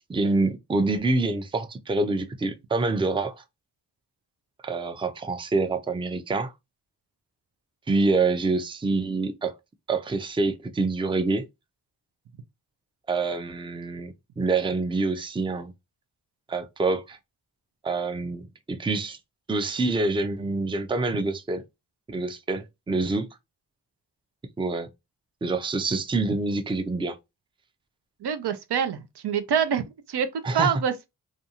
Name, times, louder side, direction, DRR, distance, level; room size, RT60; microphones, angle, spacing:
voice 1, 0.1-3.4 4.6-6.5 7.9-9.5 9.9-11.5 13.1-15.7 16.5-17.2 17.8-19.2 19.5-21.6 22.1-23.3 24.6-24.9 25.4-27.2 30.4-30.7, right 3 dB, 15° right, 0.4 m, -26 dB
voice 2, 28.2-30.3 30.5-31.1, right 8 dB, 70° right, 0.5 m, -26 dB
2.5 x 2.3 x 2.8 m
cardioid pair, 45°, 42 cm